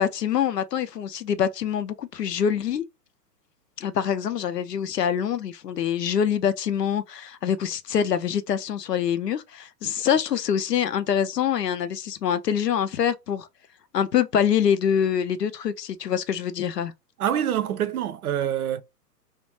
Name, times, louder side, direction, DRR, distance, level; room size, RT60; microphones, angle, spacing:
voice 1, 0.0-2.8 3.8-13.5 13.9-16.9, left 8 dB, 75° left, 0.5 m, -25 dB
voice 2, 17.2-18.8, right 10 dB, 65° right, 0.5 m, -26 dB
2.4 x 2.1 x 2.9 m
figure-of-eight pair, 120°, 49 cm